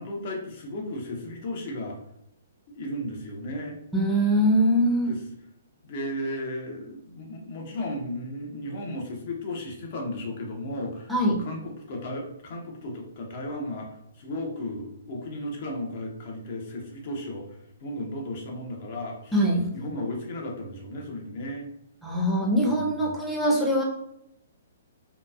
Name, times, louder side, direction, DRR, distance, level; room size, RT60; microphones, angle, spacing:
voice 1, 0.0-2.0 2.7-3.8 5.1-5.2 5.8-11.1 11.4-13.9 14.2-17.4 17.8-19.3 19.7-21.7 22.6-23.1, left 1 dB, 50° left, 1 dB, 0.7 m, -34 dB
voice 2, 3.9-5.2 11.1-11.4 19.3-19.7 22.0-23.8, equal, ahead, -4 dB, 0.6 m, -22 dB
2.9 x 2.2 x 2.3 m, 0.80 s
figure-of-eight pair, 125°, 0 cm